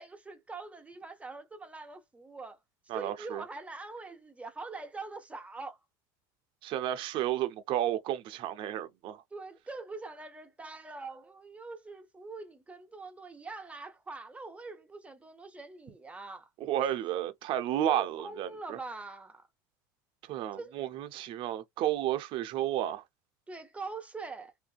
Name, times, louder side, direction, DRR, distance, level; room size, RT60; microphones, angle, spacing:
voice 1, 0.0-2.6 2.9-5.8 9.3-16.9 17.9-19.5 20.5-20.7 23.5-24.5, right 3 dB, 15° right, 0.9 m, -43 dB
voice 2, 2.9-3.4 6.6-9.2 16.7-18.8 20.3-23.0, right 12 dB, 55° right, 0.6 m, -32 dB
2.6 x 2.5 x 2.4 m
supercardioid pair, 100°, 10 cm